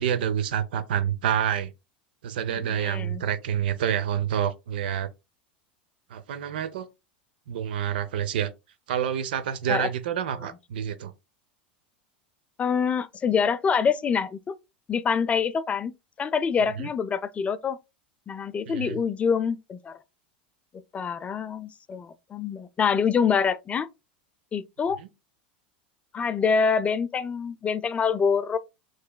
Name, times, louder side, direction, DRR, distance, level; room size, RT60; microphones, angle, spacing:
voice 1, 0.0-1.7 2.2-5.1 6.1-6.9 7.5-8.5 8.9-11.1 16.8-16.9 18.7-19.0 25.0-25.1, right 9 dB, 70° right, 0.6 m, -28 dB
voice 2, 2.7-3.2 9.7-9.9 12.6-14.5 14.9-15.9 16.2-17.8 18.3-20.0 20.9-23.9 24.5-25.0 26.1-28.6, left 6 dB, 25° left, 0.3 m, -25 dB
6.4 x 3.2 x 2.2 m
hypercardioid pair, 85°, 5 cm